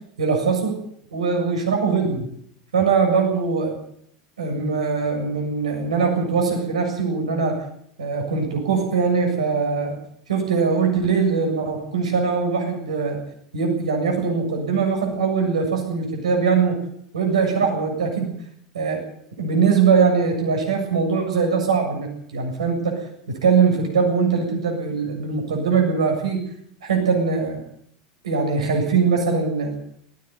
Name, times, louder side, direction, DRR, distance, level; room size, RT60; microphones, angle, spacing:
voice 1, 0.2-0.8 1.1-2.3 2.7-3.8 4.4-7.6 8.0-10.0 10.3-13.2 13.5-16.7 17.1-18.3 18.7-19.0 19.4-22.1 22.3-23.0 23.4-26.5 26.8-27.6 28.2-29.8, right 5 dB, 85° right, 2 dB, 7.4 m, -21 dB
19.0 x 16.0 x 9.6 m, 0.70 s
hypercardioid pair, 85°, 3 cm